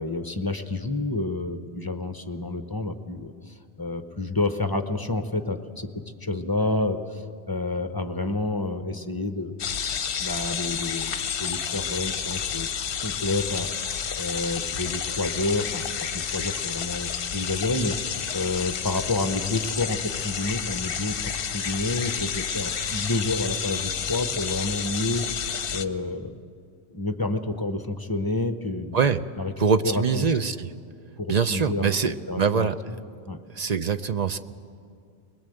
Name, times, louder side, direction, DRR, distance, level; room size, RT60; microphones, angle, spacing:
voice 1, 0.0-9.5 10.2-11.1 11.4-12.7 13.0-13.7 14.2-18.0 18.3-21.2 21.5-25.3 25.7-26.3 26.9-29.0 29.4-29.5 29.8-30.3 31.2-33.0 33.3-33.4, left 2 dB, 20° left, 8 dB, 0.9 m, -29 dB
sound 1, 9.6-25.8, left 7 dB, 60° left, 0.9 m, -30 dB
voice 2, 29.6-30.7 31.3-32.8 33.5-34.4, right 6 dB, 45° right, 10 dB, 0.7 m, -23 dB
23.0 x 21.0 x 7.9 m, 2.3 s
omnidirectional pair, 1.1 m